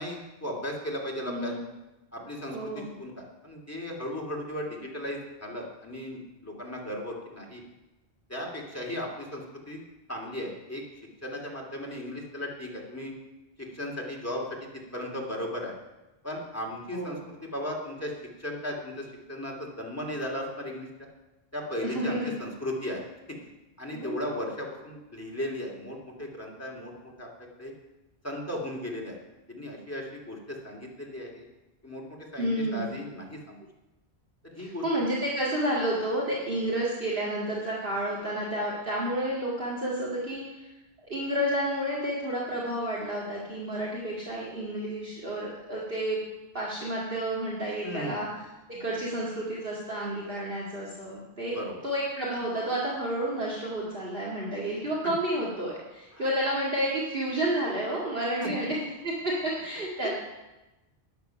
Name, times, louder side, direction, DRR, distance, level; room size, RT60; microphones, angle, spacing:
voice 1, 0.0-1.5 2.1-2.7 3.0-7.6 8.3-9.8 10.1-10.8 11.2-13.1 13.7-14.4 14.9-15.8 16.2-18.1 18.4-20.9 21.5-23.0 23.8-26.9 27.2-27.3 27.6-27.7 28.2-29.2 29.5-31.5 31.8-32.0 32.3-33.6 34.5-34.8 38.2-38.3 47.8-48.3 51.5-51.7 56.1-56.3 58.4-58.5 60.0-60.1, left 1 dB, 15° left, -1 dB, 2.4 m, -36 dB
voice 2, 1.3-1.6 2.5-2.9 16.9-17.2 21.8-22.3 23.9-24.3 32.4-32.9 34.6-40.7 41.1-46.2 46.5-48.4 48.7-51.6 51.8-60.1, right 1 dB, 60° right, -5 dB, 2.3 m, -30 dB
12.5 x 9.6 x 5.8 m, 1.0 s
omnidirectional pair, 1.1 m